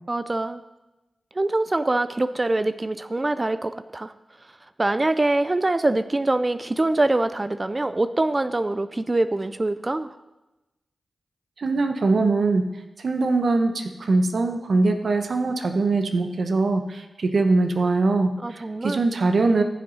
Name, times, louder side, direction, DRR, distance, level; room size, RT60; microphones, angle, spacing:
voice 1, 0.1-0.6 1.3-4.1 4.8-10.1 18.4-19.0, right 2 dB, 30° right, 13 dB, 0.4 m, -24 dB
voice 2, 11.6-12.7 13.0-19.6, right 3 dB, 70° right, 6 dB, 1.0 m, -22 dB
14.5 x 7.7 x 4.1 m, 1.0 s
cardioid pair, 60°, 0 cm